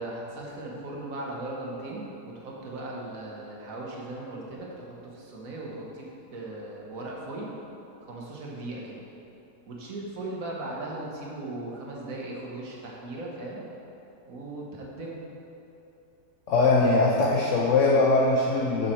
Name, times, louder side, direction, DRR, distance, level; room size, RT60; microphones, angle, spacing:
voice 1, 0.0-7.5 8.1-9.0 9.6-13.6 14.3-15.2, right 2 dB, 55° right, -3 dB, 1.5 m, -38 dB
voice 2, 16.5-18.9, left 3 dB, 60° left, -2 dB, 0.8 m, -21 dB
7.1 x 6.4 x 4.4 m, 2.9 s
omnidirectional pair, 1.8 m